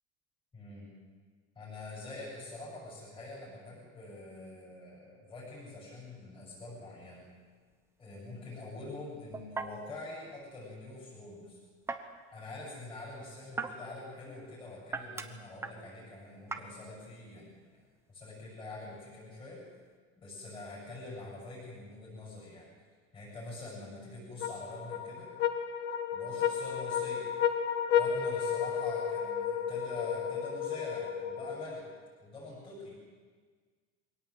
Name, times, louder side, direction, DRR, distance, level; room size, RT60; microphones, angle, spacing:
voice 1, 0.5-0.9 1.5-7.2 8.0-11.6 12.3-17.8 18.1-19.6 20.2-22.7 23.1-25.3 26.1-27.3 27.9-31.9 32.2-32.9, left 2 dB, 15° left, -5 dB, 8.0 m, -45 dB
sound 1, 7.0-20.0, right 3 dB, 10° right, 0.9 m, -45 dB
sound 2, 24.4-32.0, left 8 dB, 35° left, 1.5 m, -32 dB
23.0 x 18.0 x 8.0 m, 1.5 s
cardioid pair, 180°, 30 cm